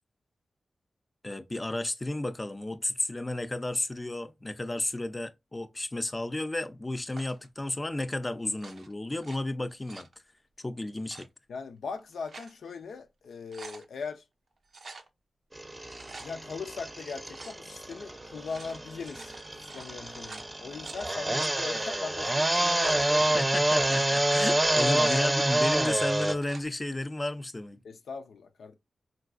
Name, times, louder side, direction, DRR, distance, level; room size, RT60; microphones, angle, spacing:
voice 1, 1.2-10.1 10.6-11.3 23.3-27.8, left 1 dB, 30° left, 0.5 m, -33 dB
sound 1, 7.1-7.5 8.5-9.4 9.7-10.1 11.0-11.3 12.0-12.6 13.0-13.1 13.3-13.9 14.7-15.1 15.7-16.3 17.3-17.6 18.3-21.0 21.4-21.5 22.4-23.0 23.7-24.1 24.7-25.3 26.2-26.7, right 3 dB, 70° right, 0.5 m, -47 dB
voice 2, 11.5-14.2 16.2-23.4 24.8-25.3 27.8-28.7, left 5 dB, 85° left, 0.4 m, -40 dB
sound 2, 15.6-26.3, right 1 dB, 25° right, 0.6 m, -28 dB
3.8 x 2.4 x 2.5 m
cardioid pair, 40°, 0 cm